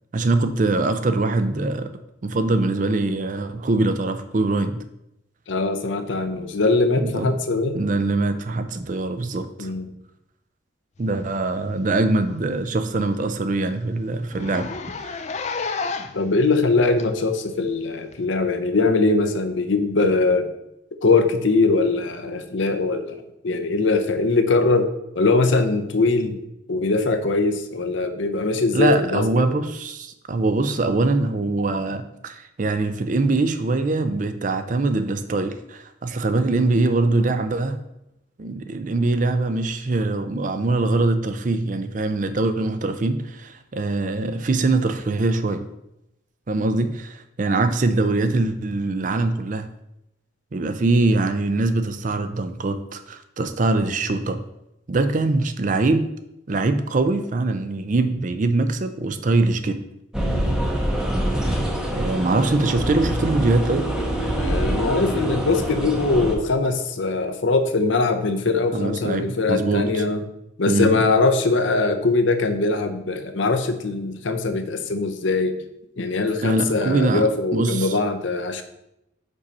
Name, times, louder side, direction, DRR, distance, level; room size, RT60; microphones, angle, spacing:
voice 1, 0.1-1.9 2.2-4.8 7.0-7.3 7.7-9.7 11.0-14.7 15.0-15.2 28.7-37.8 38.4-45.7 46.5-49.7 50.5-54.4 54.9-56.1 56.5-59.8 61.9-63.9 68.7-70.0 70.7-71.0 76.4-78.0, right 2 dB, 40° right, 10 dB, 0.4 m, -23 dB
voice 2, 5.5-7.8 9.6-9.9 16.1-20.5 21.0-24.9 25.2-26.4 26.7-29.6 64.4-70.2 70.6-75.6 76.0-78.6, left 3 dB, 70° left, 7 dB, 0.7 m, -21 dB
Zipper (clothing), 11.7-11.8 12.2-12.3 12.7-12.8 13.1-13.2 13.5-13.6 14.3-16.3 17.0-17.1 18.1-18.2, left 4 dB, 35° left, 0.4 m, -30 dB
sound 1, 60.1-66.3, right 1 dB, 5° right, 0.8 m, -25 dB
5.3 x 4.2 x 5.3 m, 0.85 s
head